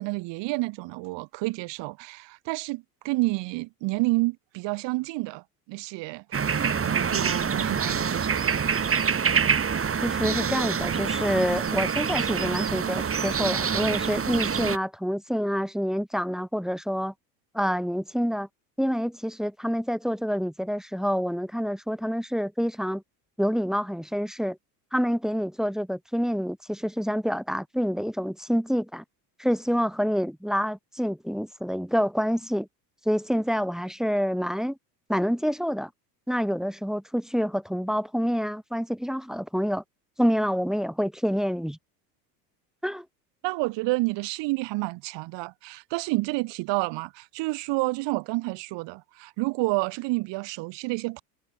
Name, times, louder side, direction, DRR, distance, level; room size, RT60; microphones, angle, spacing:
voice 1, 0.0-6.4 6.8-8.5 43.4-51.2, right 23 dB, 60° right, 2.1 m, -29 dB
sound 1, 6.3-14.8, right 6 dB, 25° right, 3.4 m, -26 dB
voice 2, 10.0-17.1 17.5-18.5 18.8-23.0 23.4-24.6 24.9-29.0 29.4-32.7 33.0-34.8 35.1-35.9 36.3-39.8 40.2-41.8 42.8-43.0, equal, ahead, 1.2 m, -27 dB
hypercardioid pair, 85°, 50 cm